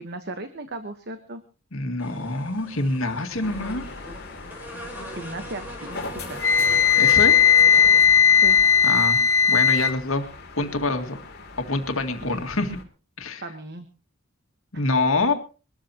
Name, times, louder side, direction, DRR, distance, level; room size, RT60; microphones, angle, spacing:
voice 1, 0.0-1.4 5.1-6.0 6.3-6.4 8.4-8.6 12.2-12.4 13.4-13.8 14.7-14.8, right 2 dB, 50° right, 8 dB, 1.3 m, -36 dB
voice 2, 1.7-3.9 7.0-7.5 8.8-9.2 9.5-10.2 10.6-11.2 11.6-12.8 13.2-13.4 14.7-15.3, left 2 dB, 75° left, 5 dB, 2.1 m, -25 dB
sound 1, 2.0-8.0, right 1 dB, 10° right, 4.4 m, -40 dB
sound 2, 3.4-12.8, left 3 dB, 50° left, 2.6 m, -39 dB
Wind instrument woodwind instrument, 6.4-9.9, left 7 dB, 15° left, 1.0 m, -17 dB
23.0 x 14.0 x 3.0 m, 0.33 s
head